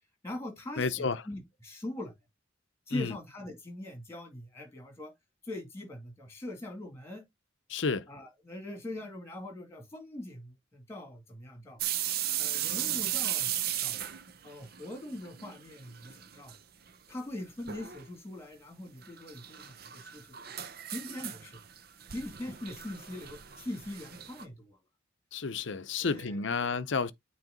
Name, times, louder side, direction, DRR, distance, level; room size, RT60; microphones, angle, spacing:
voice 1, 0.2-2.1 2.9-5.1 5.4-7.2 8.1-11.8 12.4-13.5 13.8-14.0 14.4-16.5 17.1-20.5 20.9-21.6 22.1-24.8 26.0-26.8, left 1 dB, 15° left, 2.3 m, -42 dB
voice 2, 0.8-1.2 2.9-3.2 7.7-8.1 25.3-27.1, left 4 dB, 70° left, 0.6 m, -31 dB
sound 1, 11.8-15.6 15.9-16.6 16.9-17.0 17.7-18.0 19.0-24.4, right 11 dB, 50° right, 0.7 m, -36 dB
9.0 x 3.2 x 3.8 m
head